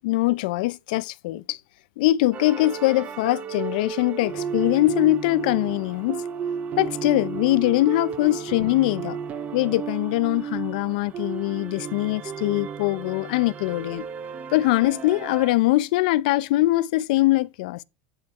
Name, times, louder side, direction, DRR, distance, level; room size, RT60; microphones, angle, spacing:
voice 1, 0.0-1.6 2.0-6.2 6.8-9.2 9.5-14.0 14.5-17.8, left 18 dB, 80° left, 0.5 m, -22 dB
sound 1, 2.3-15.5, right 7 dB, 30° right, 0.8 m, -33 dB
9.7 x 4.5 x 4.5 m
supercardioid pair, 140°, 5 cm